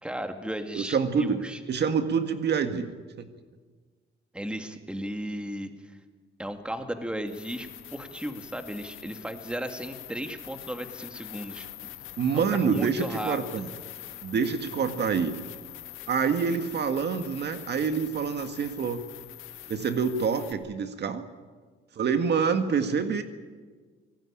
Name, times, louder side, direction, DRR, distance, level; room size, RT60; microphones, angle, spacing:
voice 1, 0.0-1.6 4.3-5.9 6.4-11.7 12.3-13.4, equal, 5° right, 6 dB, 2.3 m, -35 dB
voice 2, 0.7-2.9 3.2-3.3 12.2-13.7 14.2-15.3 16.1-19.0 19.7-21.2 22.0-23.2, right 6 dB, 60° right, 7 dB, 1.9 m, -26 dB
sound 1, 7.2-20.5, left 12 dB, 85° left, 1.9 m, -44 dB
26.0 x 18.5 x 8.8 m, 1.5 s
cardioid pair, 90°, 20 cm